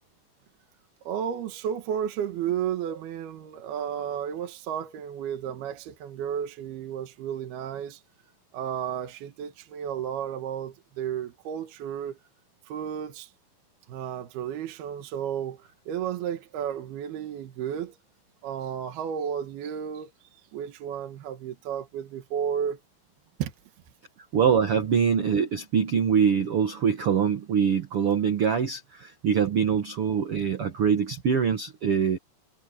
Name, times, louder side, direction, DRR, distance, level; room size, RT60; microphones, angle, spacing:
voice 1, 1.1-8.0 8.5-12.2 12.7-13.3 13.9-17.9 18.4-22.8 23.4-23.5, right 9 dB, 70° right, 3.3 m, -33 dB
voice 2, 24.3-32.2, right 7 dB, 90° right, 1.2 m, -24 dB
omnidirectional pair, 4.9 m